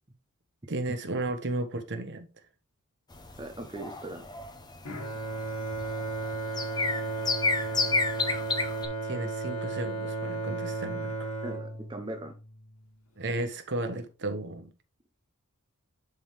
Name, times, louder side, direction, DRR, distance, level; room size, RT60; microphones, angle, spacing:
voice 1, 0.7-2.3 9.0-11.3 13.2-14.7, right 2 dB, 55° right, 1.1 m, -34 dB
sound 1, 3.1-8.9, left 3 dB, 20° left, 0.8 m, -30 dB
voice 2, 3.4-4.3 11.4-12.3, right 1 dB, 20° right, 0.7 m, -39 dB
Bowed string instrument, 4.8-13.1, right 3 dB, 90° left, 1.7 m, -34 dB
10.5 x 3.7 x 3.3 m
head